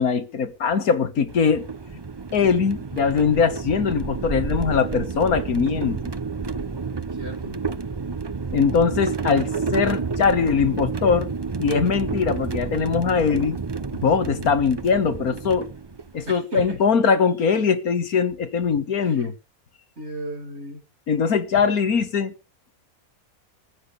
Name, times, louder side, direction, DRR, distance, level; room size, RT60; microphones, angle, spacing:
voice 1, 0.0-1.6 2.3-6.1 8.5-11.3 11.6-13.6 13.9-15.7 16.1-19.3 21.1-22.3, left 6 dB, 80° left, 2.0 m, -21 dB
sound 1, 1.3-16.3, right 4 dB, 30° right, 0.4 m, -30 dB
voice 2, 7.2-7.6 16.3-16.8 17.0-17.1 19.0-19.3 20.0-20.8, right 1 dB, 45° right, 4.9 m, -35 dB
14.5 x 10.5 x 6.9 m
omnidirectional pair, 1.5 m